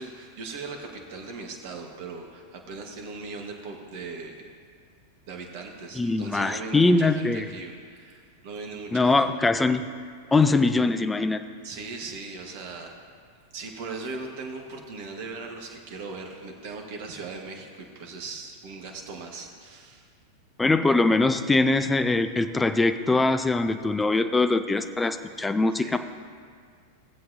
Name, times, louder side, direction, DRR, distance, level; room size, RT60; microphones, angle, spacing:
voice 1, 0.0-4.5 5.3-9.3 11.6-12.9 13.5-20.1 25.8-26.0, right 3 dB, 50° right, 2 dB, 1.4 m, -39 dB
voice 2, 6.0-7.5 8.9-9.9 10.3-11.4 20.6-26.0, left 3 dB, 10° left, 9 dB, 0.5 m, -22 dB
18.5 x 7.6 x 2.7 m, 2.1 s
figure-of-eight pair, 90°, 0 cm